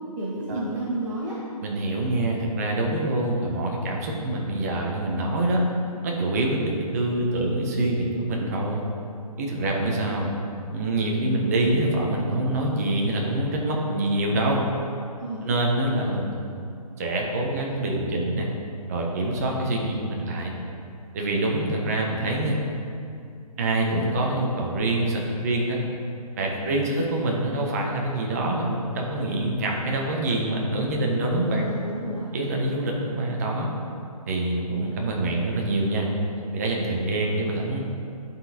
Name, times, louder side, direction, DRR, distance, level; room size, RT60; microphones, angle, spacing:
voice 1, 0.2-1.4 15.2-15.5 26.5-26.9 31.5-32.3, right 1 dB, 50° right, -8 dB, 1.5 m, -31 dB
voice 2, 1.6-5.6 6.0-8.8 9.4-10.3 10.7-14.6 15.4-16.4 17.0-18.5 18.9-20.5 21.1-22.6 23.6-25.8 26.4-31.6 32.3-33.7 34.3-36.1 36.5-37.8, right 2 dB, 25° right, -1 dB, 0.5 m, -25 dB
11.5 x 4.0 x 2.7 m, 2.5 s
hypercardioid pair, 165°, 20 cm